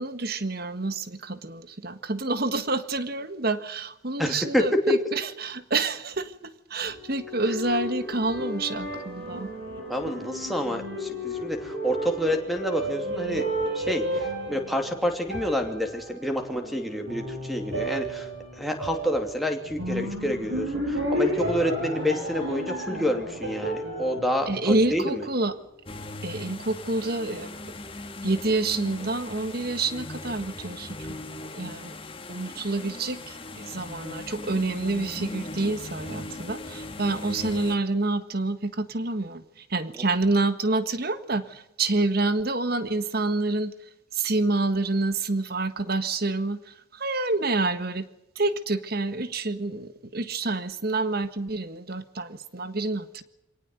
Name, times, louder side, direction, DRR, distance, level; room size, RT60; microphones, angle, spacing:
voice 1, 0.0-9.5 24.5-25.6 26.2-27.6 28.2-31.1 31.5-31.9 32.3-43.7 44.1-48.1 48.3-53.2, right 2 dB, 50° right, 12 dB, 1.5 m, -28 dB
voice 2, 4.2-4.9 9.9-13.4 13.7-25.3, equal, ahead, 5 dB, 2.7 m, -28 dB
sound 1, 6.9-25.4, equal, 70° right, 7.5 m, -33 dB
sound 2, 25.9-37.8, left 2 dB, 25° left, 1.8 m, -39 dB
24.5 x 18.0 x 7.9 m, 0.86 s
head